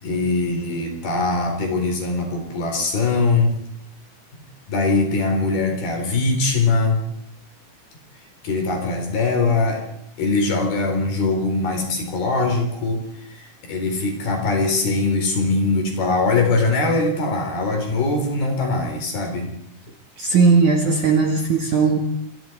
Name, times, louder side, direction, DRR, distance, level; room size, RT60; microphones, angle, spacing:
voice 1, 0.0-3.5 4.7-7.0 8.4-9.8 10.2-13.0 13.3-19.5, left 3 dB, 55° left, 3 dB, 5.9 m, -21 dB
voice 2, 20.2-22.0, right 4 dB, 55° right, 3 dB, 2.5 m, -17 dB
27.0 x 22.0 x 4.7 m, 0.68 s
omnidirectional pair, 5.4 m